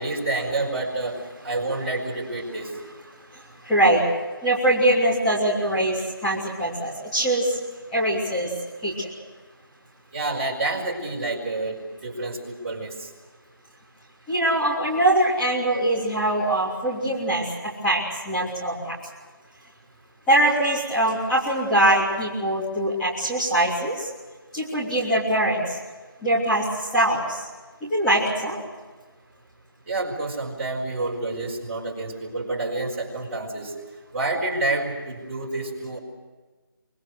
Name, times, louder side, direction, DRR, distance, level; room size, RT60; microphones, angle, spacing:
voice 1, 0.0-2.8 10.1-13.1 29.9-33.7 34.1-36.0, right 2 dB, 35° right, -2 dB, 5.0 m, -28 dB
voice 2, 3.7-4.0 4.4-5.9 6.2-7.4 7.9-8.5 8.8-8.9 14.3-17.4 17.8-18.0 18.2-18.9 20.3-23.9 24.5-25.6 26.2-26.6 26.9-27.2 27.9-28.6, right 1 dB, 5° left, -10 dB, 3.3 m, -22 dB
25.0 x 23.0 x 6.5 m, 1.3 s
figure-of-eight pair, 170°, 12 cm